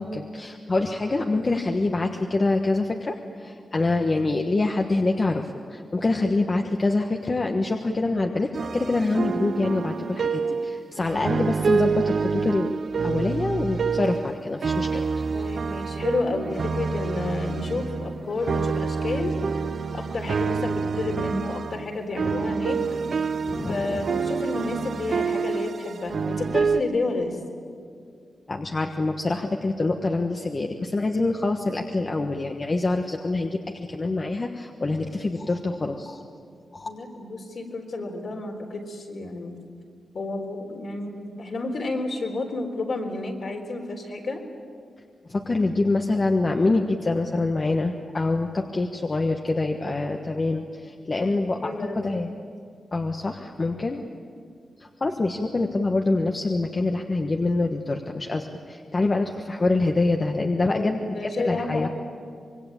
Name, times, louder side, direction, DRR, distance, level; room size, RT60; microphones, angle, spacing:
voice 1, 0.0-15.5 23.5-24.0 28.5-36.2 36.7-36.9 45.3-52.3 52.9-54.0 54.8-61.9, left 2 dB, 30° left, 3 dB, 1.3 m, -25 dB
sound 1, 8.5-14.3 14.6-26.8, right 5 dB, 55° right, 0.7 m, -27 dB
voice 2, 15.3-19.3 19.9-22.8 23.7-27.4 36.8-39.6 40.1-44.4 51.6-52.3 53.9-54.1 60.7-61.9, left 2 dB, 55° left, 2 dB, 3.9 m, -30 dB
26.0 x 22.5 x 8.9 m, 2.3 s
wide cardioid pair, 150°, 0 cm